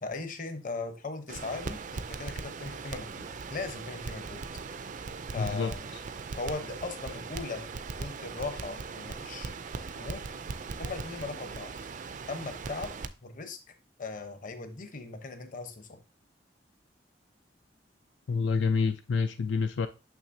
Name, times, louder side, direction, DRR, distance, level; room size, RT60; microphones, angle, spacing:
voice 1, 0.0-4.4 5.3-5.9 6.4-9.5 10.0-10.3 10.8-11.7 12.3-12.9 13.2-13.6 14.0-16.0, left 3 dB, 45° left, 0.9 m, -38 dB
Crackle, 1.3-13.1, right 4 dB, 45° right, 0.4 m, -39 dB
voice 2, 5.4-5.7 18.3-19.9, left 5 dB, 80° left, 0.4 m, -27 dB
6.4 x 6.0 x 2.7 m
head